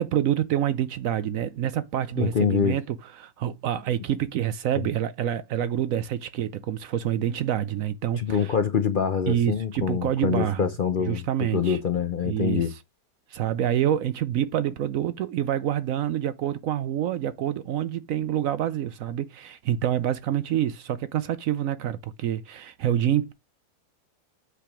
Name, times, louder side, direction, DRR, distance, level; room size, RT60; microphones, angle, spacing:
voice 1, 0.0-8.5 9.3-10.7 11.0-11.8 12.2-12.8 13.3-23.3, right 10 dB, 70° right, 0.8 m, -27 dB
voice 2, 2.2-2.8 8.2-11.2 11.5-12.7, left 7 dB, 60° left, 0.5 m, -25 dB
8.2 x 3.4 x 6.0 m
omnidirectional pair, 1.8 m